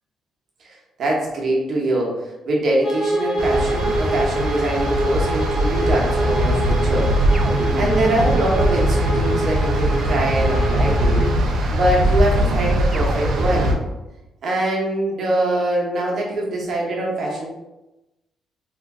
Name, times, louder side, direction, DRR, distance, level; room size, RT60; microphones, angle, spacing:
voice 1, 1.0-7.1 7.7-11.3 11.7-13.7 14.4-17.5, right 1 dB, 55° right, -3 dB, 1.1 m, -23 dB
Bowed string instrument, 2.8-11.4, right 1 dB, 5° left, 1.1 m, -26 dB
sound 1, 3.4-13.7, right 1 dB, 75° right, 0.6 m, -21 dB
sound 2, 7.3-9.8 12.9-14.0, right 2 dB, 30° right, 0.4 m, -33 dB
3.0 x 2.2 x 3.6 m, 0.99 s
cardioid pair, 90°, 0 cm